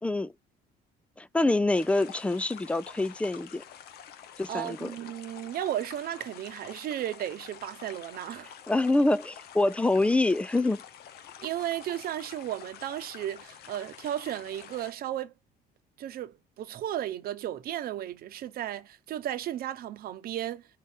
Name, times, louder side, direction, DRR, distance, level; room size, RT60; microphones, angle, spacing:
voice 1, 0.0-0.3 1.2-3.6 4.4-5.0 8.7-10.8, left 2 dB, 5° left, 0.3 m, -26 dB
sound 1, 1.7-14.9, left 9 dB, 70° left, 0.7 m, -48 dB
voice 2, 4.5-8.5 11.4-15.3 16.0-20.7, right 12 dB, 60° right, 0.9 m, -34 dB
4.5 x 2.8 x 3.5 m
cardioid pair, 110°, 17 cm